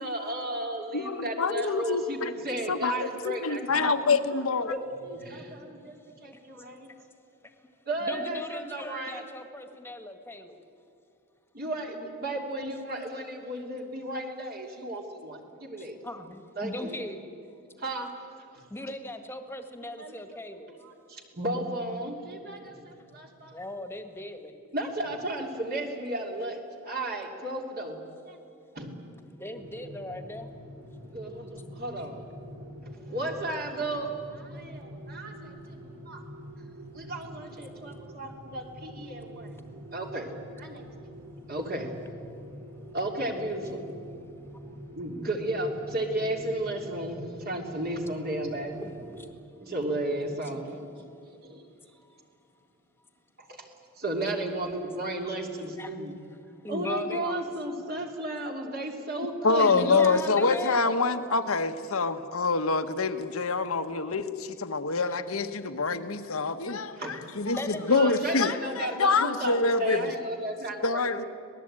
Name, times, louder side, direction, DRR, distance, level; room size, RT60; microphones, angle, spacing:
voice 1, 0.0-6.9 7.9-9.3 11.5-15.9 16.6-16.9 17.8-18.1 18.5-18.6 20.0-20.2 20.8-23.5 24.7-28.0 28.3-28.4 28.7-29.0 31.0-32.3 32.8-36.2 36.9-39.5 39.9-40.3 40.6-41.1 41.5-41.9 42.9-43.8 45.0-48.7 49.6-51.0 51.4-51.7 53.4-53.7 54.0-56.2 56.7-60.4 60.7-60.9 67.0-67.1 67.9-71.3, right 1 dB, 45° right, 1 dB, 3.1 m, -34 dB
voice 2, 0.9-2.3 2.7-4.7 59.4-67.6 67.9-70.1 70.8-71.2, left 4 dB, 75° left, 10 dB, 1.2 m, -26 dB
voice 3, 8.1-10.6 15.8-17.2 18.7-20.7 23.5-24.5 29.2-30.5 48.2-49.3 50.1-50.3 54.5-54.9 55.5-55.9 56.3-56.4 56.6-57.4 59.6-60.8 65.1-65.2 67.5-69.2, left 1 dB, 10° left, 7 dB, 1.7 m, -39 dB
sound 1, 29.5-49.3, equal, 90° right, 3.7 m, -45 dB
26.0 x 19.0 x 8.9 m, 2.5 s
head